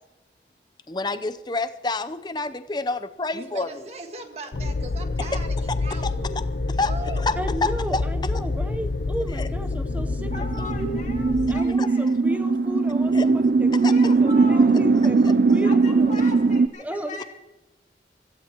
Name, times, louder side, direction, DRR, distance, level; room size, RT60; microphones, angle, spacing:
voice 1, 0.9-3.8 6.8-7.3 7.6-8.0 9.3-9.5 11.8-11.9 13.1-13.3 13.8-13.9, left 3 dB, 25° left, 12 dB, 0.6 m, -28 dB
voice 2, 3.3-6.5 6.8-7.2, right 2 dB, 35° right, 4 dB, 1.7 m, -38 dB
sound 1, 4.5-11.6, left 3 dB, 60° left, 0.6 m, -28 dB
voice 3, 7.4-10.3 10.6-10.9 11.5-13.3 13.6-16.3 16.8-17.2, right 1 dB, 10° right, 8 dB, 0.8 m, -33 dB
sound 2, 10.0-16.7, right 4 dB, 55° right, 0.4 m, -20 dB
voice 4, 10.3-12.1 13.8-14.8 15.6-17.2, left 2 dB, 45° left, 2 dB, 2.4 m, -39 dB
24.5 x 15.5 x 3.0 m, 1.1 s
head